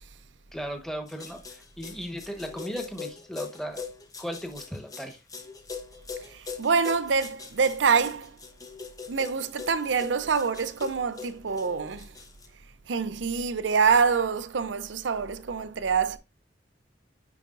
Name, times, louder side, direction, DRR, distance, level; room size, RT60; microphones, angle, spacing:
voice 1, 0.5-3.8 4.2-5.2, equal, ahead, 1.2 m, -36 dB
sound 1, 1.1-12.5, left 5 dB, 20° left, 0.9 m, -41 dB
voice 2, 6.2-8.4 9.1-12.1 12.9-16.2, right 5 dB, 85° right, 0.6 m, -26 dB
10.0 x 4.9 x 2.5 m
head